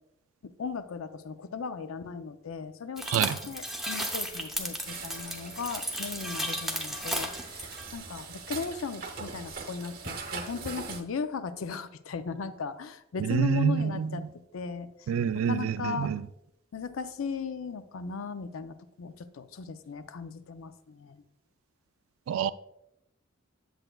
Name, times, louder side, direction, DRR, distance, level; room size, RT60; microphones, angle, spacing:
voice 1, 0.4-14.2 14.5-14.9 15.3-16.1 16.7-21.2, left 5 dB, 85° left, 11 dB, 0.5 m, -37 dB
sound 1, 3.0-7.8, right 1 dB, ahead, 0.6 m, -34 dB
voice 2, 3.1-3.4 13.2-14.1 15.1-16.2 22.3-22.5, right 8 dB, 80° right, 16 dB, 0.3 m, -27 dB
sound 2, 4.9-11.0, right 4 dB, 45° right, 0.7 m, -41 dB
7.9 x 7.7 x 2.3 m, 0.83 s
head